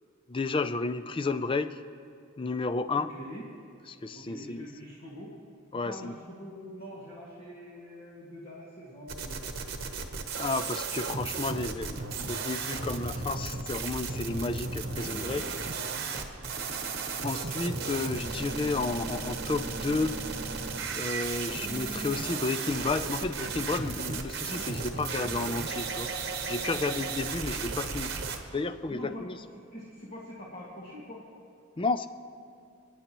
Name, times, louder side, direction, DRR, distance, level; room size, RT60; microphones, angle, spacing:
voice 1, 0.3-1.8 2.4-3.1 3.9-4.7 5.7-6.1 10.3-15.5 17.2-20.2 20.9-26.1 26.5-28.1 28.5-29.4 31.8-32.1, left 3 dB, 25° left, 11 dB, 0.4 m, -32 dB
voice 2, 3.0-3.4 4.1-5.3 5.7-9.9 15.3-16.5 26.7-26.9 28.9-29.3 29.6-31.2, equal, 40° left, -7 dB, 1.9 m, -45 dB
sound 1, 9.1-28.4, right 4 dB, 50° right, 1.0 m, -35 dB
29.5 x 10.0 x 3.0 m, 2.6 s
head